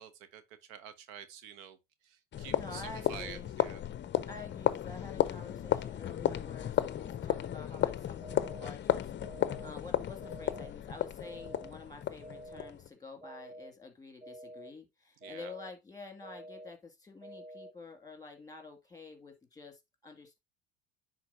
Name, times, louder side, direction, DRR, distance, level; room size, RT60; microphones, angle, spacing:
voice 1, 0.0-3.8 15.2-15.5, right 9 dB, 75° right, 1.0 m, -49 dB
sound 1, 2.3-12.9, left 11 dB, 30° left, 0.6 m, -34 dB
voice 2, 2.5-3.5 4.3-20.4, left 3 dB, 10° left, 2.2 m, -49 dB
sound 2, 8.2-8.7 9.2-9.7 10.2-10.7 11.2-11.7 12.2-12.7 13.2-13.7 14.2-14.7 15.2-15.7 16.2-16.7 17.2-17.7, right 1 dB, 20° right, 4.1 m, -48 dB
10.0 x 4.0 x 2.7 m
hypercardioid pair, 85°, 41 cm